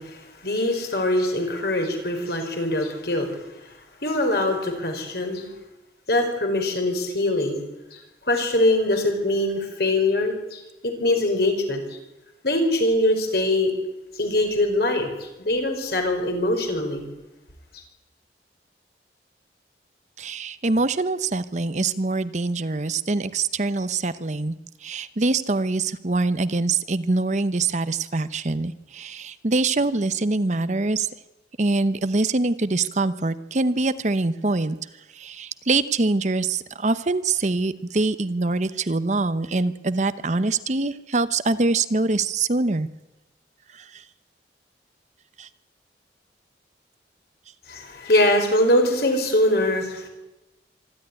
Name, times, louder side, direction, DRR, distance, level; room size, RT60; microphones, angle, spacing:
voice 1, 0.0-3.3 4.0-5.5 6.1-7.6 7.9-8.0 8.3-12.0 12.4-13.7 14.1-17.1 47.7-50.1, left 1 dB, 60° left, 4 dB, 4.9 m, -23 dB
voice 2, 20.2-24.5 24.8-31.1 31.6-34.8 35.1-42.9 43.7-44.0 45.4-45.5, right 3 dB, 40° right, 13 dB, 0.8 m, -24 dB
25.5 x 12.0 x 10.0 m, 1.0 s
head